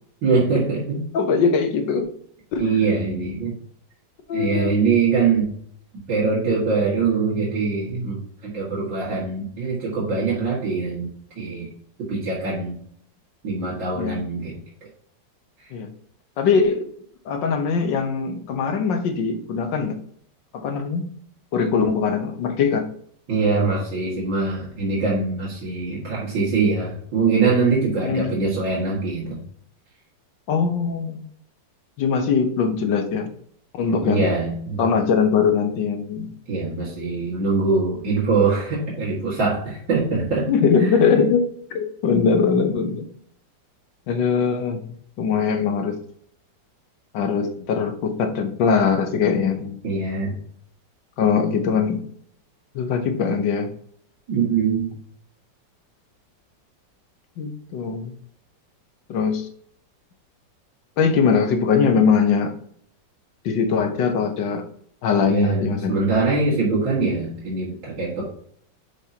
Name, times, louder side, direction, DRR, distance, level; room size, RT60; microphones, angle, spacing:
voice 1, 0.2-1.0 2.6-3.5 4.3-5.5 6.1-11.1 11.4-11.7 12.0-12.7 13.4-14.5 23.3-29.4 33.9-34.8 36.5-40.5 40.8-40.9 49.8-50.3 54.3-54.9 65.2-68.2, right 4 dB, 85° right, -8 dB, 2.8 m, -23 dB
voice 2, 1.1-2.1 2.5-2.6 3.0-3.1 4.3-4.9 13.9-14.2 15.7-15.9 16.4-16.8 17.2-20.0 20.5-21.1 21.5-22.9 28.0-28.4 30.5-31.2 32.0-33.3 33.7-34.3 34.8-36.3 40.5-43.1 44.1-44.8 45.2-46.0 47.1-49.8 51.2-52.0 52.7-53.7 57.4-58.1 59.1-59.5 61.0-62.5 63.4-64.6 65.0-66.0, left 6 dB, 80° left, 6 dB, 1.7 m, -21 dB
10.0 x 4.9 x 2.9 m, 0.63 s
omnidirectional pair, 2.0 m